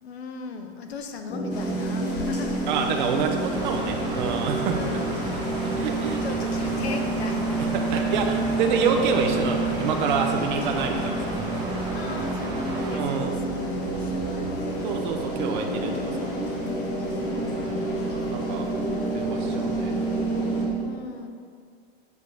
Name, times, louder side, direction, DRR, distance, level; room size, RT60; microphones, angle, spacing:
voice 1, 0.0-2.7 4.8-5.4 6.2-7.7 10.3-10.8 11.9-14.9 15.8-17.7 20.8-21.3, left 5 dB, 85° left, 6 dB, 1.1 m, -38 dB
sound 1, 1.3-20.7, right 2 dB, 10° left, 0.5 m, -29 dB
sound 2, 1.5-20.7, left 1 dB, 60° left, 2.2 m, -40 dB
voice 2, 2.7-4.8 5.6-6.4 7.6-11.2 12.9-13.4 14.8-16.3 17.3-17.8 18.3-18.7 19.1-20.5, right 5 dB, 50° right, 3 dB, 0.9 m, -28 dB
sound 3, 3.5-13.0, right 2 dB, 15° right, 0.9 m, -34 dB
8.1 x 5.4 x 6.5 m, 2.2 s
supercardioid pair, 165°, 31 cm